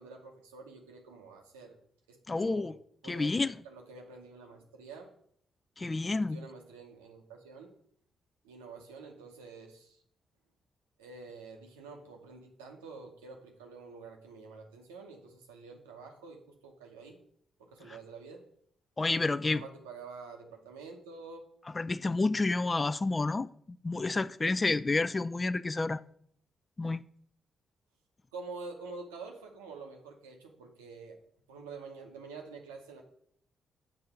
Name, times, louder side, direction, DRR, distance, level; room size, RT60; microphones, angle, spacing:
voice 1, 0.0-1.8 2.1-2.7 3.0-5.1 6.0-7.7 8.4-10.0 11.0-17.2 17.6-18.4 19.3-21.5 28.3-31.2 31.5-33.0, right 4 dB, 90° right, 0.8 m, -48 dB
voice 2, 2.3-2.7 3.1-3.5 5.8-6.5 19.0-19.6 21.7-26.0 26.8-27.0, left 3 dB, 35° left, 0.3 m, -30 dB
6.9 x 2.6 x 5.7 m
hypercardioid pair, 40°, 0 cm